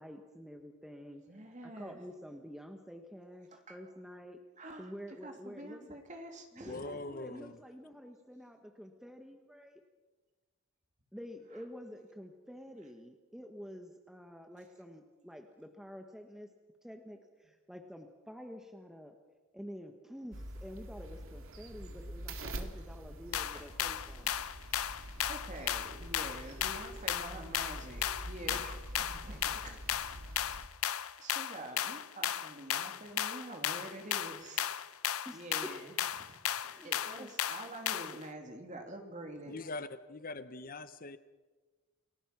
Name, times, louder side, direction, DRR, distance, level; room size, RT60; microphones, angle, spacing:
voice 1, 0.0-1.2 1.6-4.4 4.8-5.9 6.5-9.8 11.1-16.5 16.8-19.1 19.5-24.3 35.2-35.7 36.6-36.9 37.2-37.3, equal, ahead, 4 dB, 1.3 m, -49 dB
voice 2, 1.3-2.0 3.5-3.8 4.6-4.9 5.2-7.0 23.5-23.7 25.2-29.8 31.2-34.8 35.3-36.4 36.8-39.6, right 1 dB, 35° right, 4 dB, 3.0 m, -47 dB
voice 3, 6.7-7.5 39.5-41.2, left 3 dB, 40° left, 12 dB, 0.8 m, -42 dB
sound 1, 20.3-30.7, right 1 dB, 70° right, 2.2 m, -46 dB
sound 2, 23.3-38.2, left 10 dB, 80° left, 0.7 m, -35 dB
29.0 x 19.0 x 6.0 m, 1.3 s
head